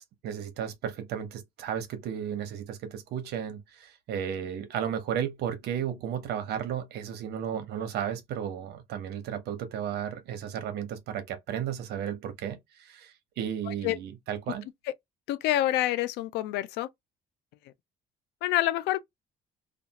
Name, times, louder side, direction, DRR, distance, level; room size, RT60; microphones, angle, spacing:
voice 1, 0.0-14.6, right 9 dB, 75° right, 0.9 m, -34 dB
voice 2, 13.7-14.0 15.3-16.9 18.4-19.0, left 14 dB, 85° left, 0.4 m, -27 dB
2.5 x 2.3 x 2.8 m
cardioid pair, 110°, 17 cm